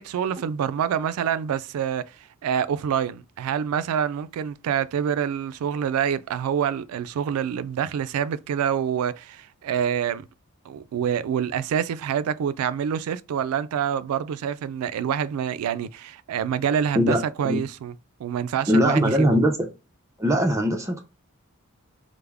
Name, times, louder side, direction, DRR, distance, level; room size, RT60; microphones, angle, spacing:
voice 1, 0.0-2.0 2.4-10.3 10.7-17.9 18.2-19.4, right 8 dB, 90° right, 0.3 m, -26 dB
voice 2, 17.0-17.6 18.7-19.5 20.2-21.0, equal, 15° right, 0.5 m, -21 dB
3.4 x 2.0 x 3.3 m
head